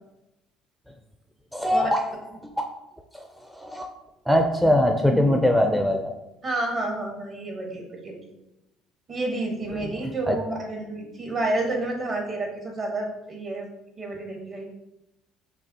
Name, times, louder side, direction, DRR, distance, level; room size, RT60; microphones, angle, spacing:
voice 1, 1.5-2.0 2.4-2.5 3.1-3.9 4.3-6.1 9.7-9.9 10.3-10.4, left 1 dB, ahead, 3 dB, 0.4 m, -22 dB
voice 2, 6.4-8.3 9.1-13.7 14.0-14.6, right 2 dB, 45° right, 0 dB, 1.4 m, -30 dB
6.0 x 2.3 x 2.8 m, 0.92 s
hypercardioid pair, 70°, 0 cm